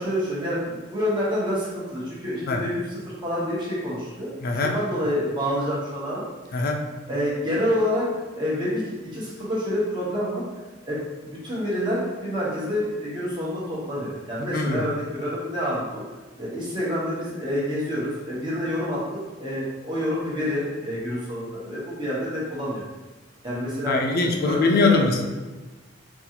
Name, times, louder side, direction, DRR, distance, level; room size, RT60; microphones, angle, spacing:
voice 1, 0.0-6.7 7.1-8.1 8.3-10.4 10.8-16.0 16.4-19.0 19.4-22.8 23.4-24.0 24.4-25.1, equal, 25° right, -7 dB, 1.0 m, -28 dB
voice 2, 4.4-4.7 6.5-6.8 14.5-14.8 23.9-25.3, left 3 dB, 50° left, 3 dB, 0.4 m, -22 dB
3.9 x 2.4 x 2.9 m, 1.2 s
head